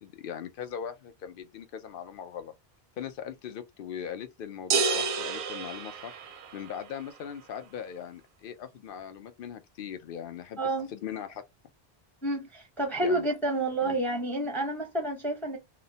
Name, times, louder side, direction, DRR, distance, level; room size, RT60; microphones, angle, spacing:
voice 1, 0.0-2.5 3.0-6.1 6.5-10.6 10.9-11.4 13.0-13.3 13.8-14.0, left 8 dB, 65° left, 0.7 m, -40 dB
sound 1, 4.7-6.7, right 5 dB, 65° right, 0.6 m, -29 dB
voice 2, 10.6-10.9 12.2-15.6, right 1 dB, ahead, 0.7 m, -29 dB
2.9 x 2.1 x 2.6 m
omnidirectional pair, 1.0 m